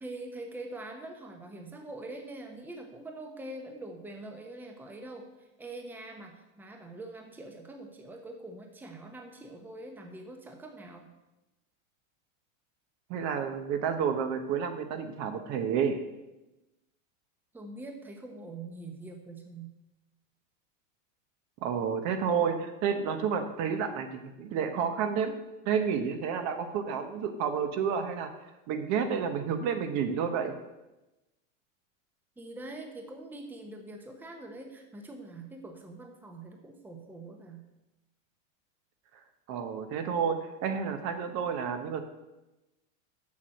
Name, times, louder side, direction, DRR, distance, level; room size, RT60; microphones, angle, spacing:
voice 1, 0.0-11.1 17.5-19.7 32.4-37.6, right 2 dB, 5° right, 3 dB, 0.9 m, -44 dB
voice 2, 13.1-16.0 21.6-25.4 25.6-28.3 28.7-30.5 39.5-42.0, right 7 dB, 45° right, 7 dB, 1.0 m, -30 dB
7.3 x 6.3 x 6.4 m, 1.0 s
supercardioid pair, 135°, 38 cm